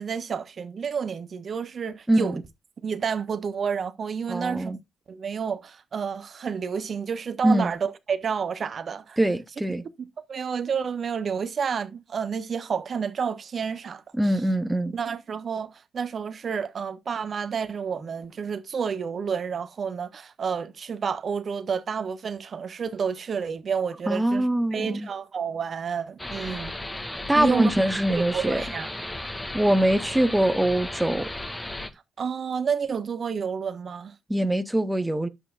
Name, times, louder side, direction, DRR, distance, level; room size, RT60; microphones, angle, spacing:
voice 1, 0.0-2.4 2.8-4.8 5.1-9.2 10.3-14.0 14.9-26.7 27.3-27.7 28.1-28.9 32.2-34.1, right 6 dB, 50° right, 1.2 m, -30 dB
voice 2, 4.3-4.8 7.4-7.7 9.2-9.8 14.1-14.9 24.1-25.1 27.3-28.6 29.5-31.3 34.3-35.3, right 1 dB, 10° right, 1.1 m, -23 dB
sound 1, 26.2-31.9, left 1 dB, 15° left, 2.1 m, -35 dB
11.0 x 8.1 x 2.5 m
hypercardioid pair, 45°, 0 cm